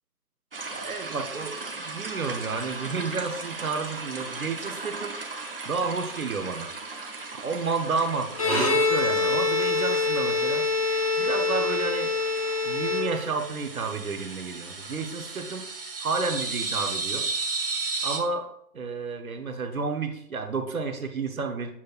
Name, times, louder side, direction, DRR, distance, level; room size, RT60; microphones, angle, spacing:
sound 1, 0.5-18.2, right 3 dB, 35° right, 0.7 m, -36 dB
voice 1, 0.7-5.2 5.6-6.7 7.3-10.7 11.2-12.1 12.6-15.6 16.0-17.2 18.0-18.5 18.7-21.7, right 4 dB, 60° right, 6 dB, 1.0 m, -31 dB
Bowed string instrument, 8.3-13.6, left 3 dB, 20° left, 0.8 m, -25 dB
7.3 x 6.1 x 2.4 m, 0.72 s
figure-of-eight pair, 155°, 49 cm